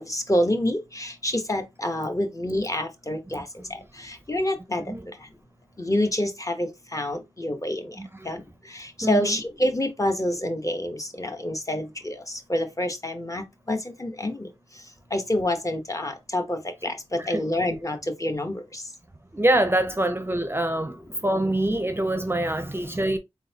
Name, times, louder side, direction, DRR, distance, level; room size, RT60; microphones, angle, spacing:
voice 1, 0.0-3.4 4.3-4.8 5.8-7.8 8.3-8.4 9.1-12.1 12.5-14.4 15.1-16.9 17.3-18.5, left 1 dB, 30° left, 0.9 m, -27 dB
voice 2, 3.3-3.7 4.9-5.1 8.0-8.3 9.0-9.4 17.1-17.5 19.3-23.2, right 1 dB, 20° right, 0.5 m, -25 dB
3.9 x 3.5 x 2.8 m
wide cardioid pair, 70°, 11 cm